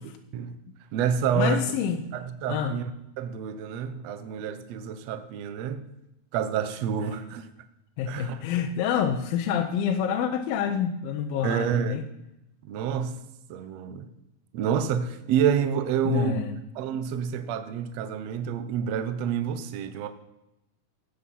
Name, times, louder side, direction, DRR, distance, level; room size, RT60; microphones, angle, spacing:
voice 1, 0.0-0.6 0.9-1.7 2.1-2.9 3.2-5.8 6.3-7.5 8.1-8.4 11.4-12.0 12.6-13.2 13.5-14.1 14.5-16.4 16.7-20.1, right 8 dB, 75° right, 10 dB, 1.5 m, -28 dB
voice 2, 1.4-2.0 2.5-2.8 8.0-12.0 16.0-16.6, left 8 dB, 85° left, 5 dB, 2.6 m, -27 dB
14.5 x 8.8 x 5.5 m, 0.89 s
omnidirectional pair, 4.1 m